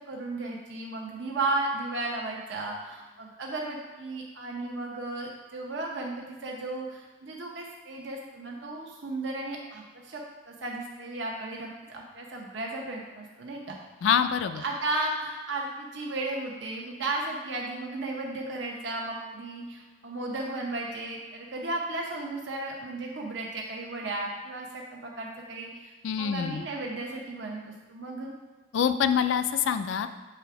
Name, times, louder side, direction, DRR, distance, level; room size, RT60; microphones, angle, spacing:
voice 1, 0.1-13.8 14.6-25.9 26.2-28.4, right 2 dB, 75° right, -1 dB, 0.7 m, -34 dB
voice 2, 14.0-14.6 26.0-26.6 28.7-30.1, left 8 dB, 85° left, 10 dB, 0.3 m, -25 dB
7.0 x 3.4 x 4.7 m, 1.3 s
head